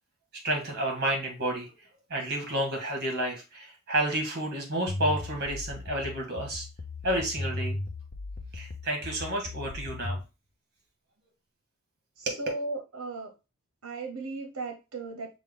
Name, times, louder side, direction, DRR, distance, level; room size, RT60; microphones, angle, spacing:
voice 1, 0.4-1.7 2.1-6.6 7.0-7.8 8.5-10.2 12.2-12.4, right 1 dB, 50° right, 1 dB, 1.6 m, -30 dB
sound 1, 4.9-10.2, left 2 dB, 40° left, 0.5 m, -36 dB
voice 2, 12.2-13.3 13.8-15.3, right 3 dB, 70° right, 4 dB, 0.9 m, -36 dB
6.0 x 2.3 x 3.6 m, 0.29 s
head